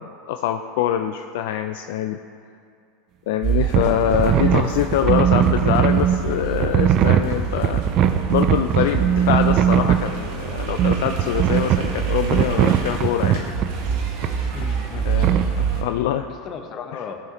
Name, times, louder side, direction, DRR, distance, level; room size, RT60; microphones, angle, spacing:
voice 1, 0.0-2.2 3.3-7.8 8.3-13.5 15.1-16.3, left 11 dB, 70° left, 6 dB, 0.3 m, -24 dB
sound 1, 3.4-15.8, right 7 dB, 65° right, 1.4 m, -26 dB
sound 2, 3.7-3.9 4.1-6.2 6.6-10.1 10.8-11.9 12.3-13.7 14.2-14.3 15.2-15.5, right 9 dB, 50° right, 0.5 m, -19 dB
voice 2, 14.5-15.6 16.2-17.2, left 7 dB, 45° left, 6 dB, 0.9 m, -36 dB
15.0 x 5.7 x 3.0 m, 2.4 s
hypercardioid pair, 95°, 0 cm